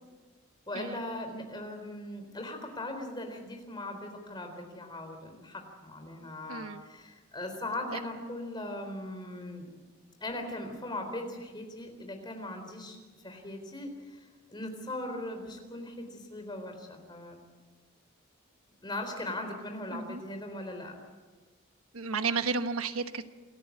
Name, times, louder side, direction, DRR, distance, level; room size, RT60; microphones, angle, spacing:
voice 1, 0.7-9.7 10.2-13.0 13.2-14.2 14.5-17.4 18.8-20.9, left 1 dB, 20° left, 4 dB, 4.0 m, -39 dB
voice 2, 6.5-6.8 7.9-8.0 19.9-20.2 21.9-23.3, right 4 dB, 85° right, 9 dB, 1.2 m, -32 dB
27.5 x 14.0 x 8.6 m, 1.3 s
head